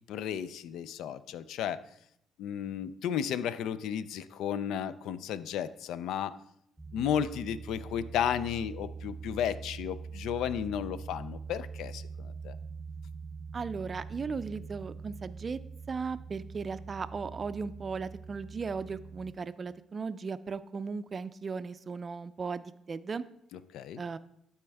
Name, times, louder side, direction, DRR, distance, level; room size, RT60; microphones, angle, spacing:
voice 1, 0.1-1.8 2.4-6.4 6.9-12.6 23.5-24.0, left 9 dB, 85° left, 15 dB, 0.3 m, -33 dB
sound 1, 6.8-19.3, right 5 dB, 5° right, 1.0 m, -44 dB
voice 2, 13.5-15.6 15.9-23.2 24.0-24.2, right 5 dB, 40° right, 14 dB, 0.4 m, -37 dB
12.0 x 4.3 x 3.4 m, 0.74 s
cardioid pair, 90°, 0 cm